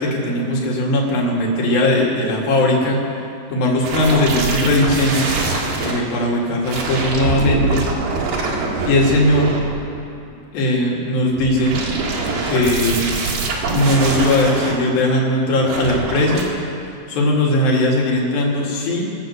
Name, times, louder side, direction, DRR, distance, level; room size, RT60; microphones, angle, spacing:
voice 1, 0.0-3.1 3.5-5.4 5.8-7.9 8.8-9.6 10.5-11.8 12.5-13.1 13.7-16.5 17.1-19.2, left 1 dB, 80° left, -2 dB, 3.8 m, -18 dB
sound 1, 3.8-6.0 6.6-10.1 11.3-14.7 15.6-16.4, right 3 dB, 75° right, 3.5 m, -24 dB
22.5 x 8.1 x 6.8 m, 2.6 s
omnidirectional pair, 4.1 m